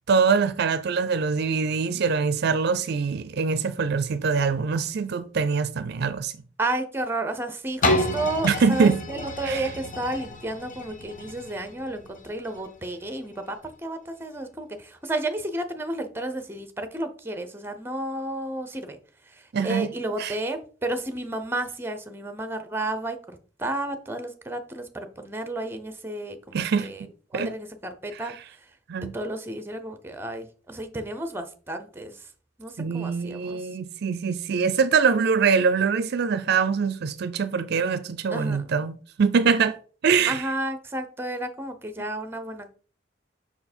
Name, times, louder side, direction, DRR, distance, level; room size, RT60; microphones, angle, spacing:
voice 1, 0.1-6.3 8.4-9.0 9.4-9.6 19.5-19.9 20.2-20.3 26.5-26.9 27.3-27.5 28.9-29.1 32.8-39.8 40.0-40.4, right 5 dB, 55° right, 0.4 m, -23 dB
voice 2, 6.6-19.0 19.3-28.7 29.0-32.3 32.6-33.7 38.3-38.8 40.3-42.7, right 1 dB, 10° right, 0.7 m, -32 dB
sound 1, 7.8-13.6 14.1-14.2, left 1 dB, 40° left, 0.9 m, -30 dB
5.6 x 4.6 x 4.3 m
head